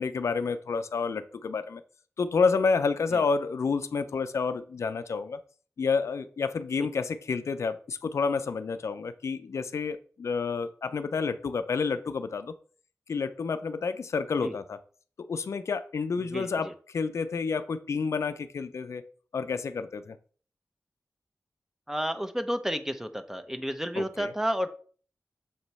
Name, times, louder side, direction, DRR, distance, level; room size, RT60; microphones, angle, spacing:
voice 1, 0.0-1.8 2.2-5.4 5.8-12.5 13.1-14.8 15.3-19.0 19.3-20.2 24.0-24.3, left 5 dB, 85° left, 11 dB, 0.4 m, -29 dB
voice 2, 16.3-16.7 21.9-24.7, equal, 5° right, 8 dB, 0.7 m, -31 dB
7.0 x 3.0 x 5.4 m, 0.44 s
wide cardioid pair, 85°, 5 cm